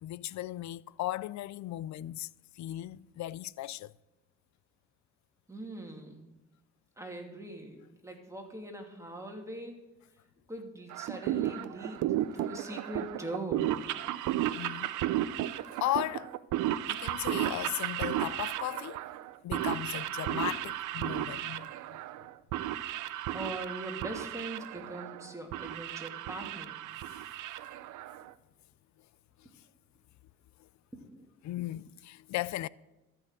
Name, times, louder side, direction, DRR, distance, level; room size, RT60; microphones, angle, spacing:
voice 1, 0.0-2.3 2.6-3.9 14.6-14.9 15.8-16.3 16.9-19.0 19.4-22.0 27.1-27.3 31.4-32.7, left 15 dB, 70° left, 0.5 m, -36 dB
voice 2, 5.5-6.2 7.0-9.8 10.5-13.7 23.3-26.8 30.9-31.2, right 1 dB, 10° right, 2.7 m, -42 dB
sound 1, 10.9-28.3, right 13 dB, 85° right, 0.6 m, -34 dB
13.5 x 6.2 x 9.0 m
cardioid pair, 90°, 30 cm